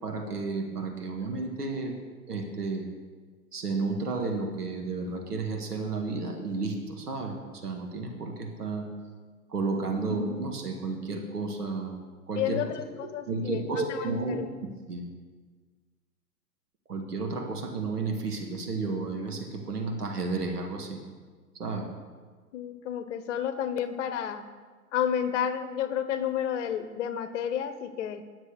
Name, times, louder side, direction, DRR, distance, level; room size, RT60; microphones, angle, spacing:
voice 1, 0.0-1.9 2.3-2.9 3.5-8.9 9.5-12.0 12.3-12.6 13.0-14.4 14.9-15.1 16.9-21.0 21.6-21.9, right 3 dB, 85° right, 3 dB, 1.9 m, -32 dB
voice 2, 12.3-14.5 22.5-24.5 24.9-28.2, left 9 dB, 50° left, 11 dB, 1.0 m, -31 dB
10.5 x 7.0 x 6.7 m, 1.5 s
hypercardioid pair, 120°, 46 cm